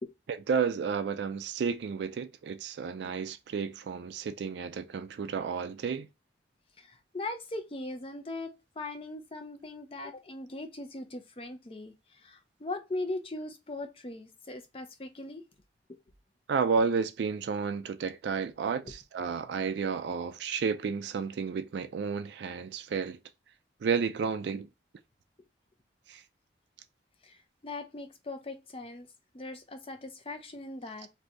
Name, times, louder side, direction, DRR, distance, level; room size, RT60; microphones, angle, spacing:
voice 1, 0.3-6.1 16.5-23.2 23.8-24.7 26.1-26.2, right 5 dB, 65° right, 0.3 m, -31 dB
voice 2, 6.8-15.4 19.2-19.3 27.2-29.1 29.3-31.1, left 2 dB, 30° left, 0.5 m, -40 dB
2.7 x 2.6 x 3.2 m
head